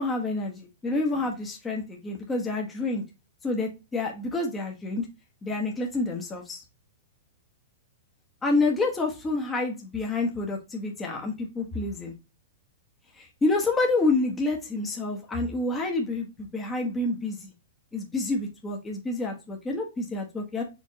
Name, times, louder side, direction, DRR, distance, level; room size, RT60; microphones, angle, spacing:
voice 1, 0.0-3.0 3.4-5.1 5.4-6.6 8.4-12.1 13.1-17.5 17.9-20.6, left 2 dB, 15° left, 0 dB, 1.0 m, -28 dB
4.7 x 3.4 x 2.8 m, 0.27 s
hypercardioid pair, 110°, 0 cm